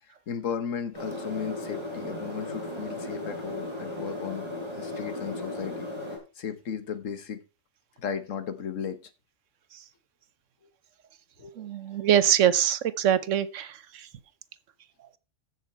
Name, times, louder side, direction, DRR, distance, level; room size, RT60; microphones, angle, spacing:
voice 1, 0.3-4.5 4.8-5.9 6.4-7.4 8.0-9.0 11.4-11.6, left 7 dB, 85° left, 1.5 m, -35 dB
sound 1, 0.9-6.2, left 2 dB, 20° right, 5.3 m, -36 dB
voice 2, 11.6-13.7, right 10 dB, 75° right, 1.1 m, -23 dB
14.5 x 6.4 x 4.4 m
omnidirectional pair, 1.3 m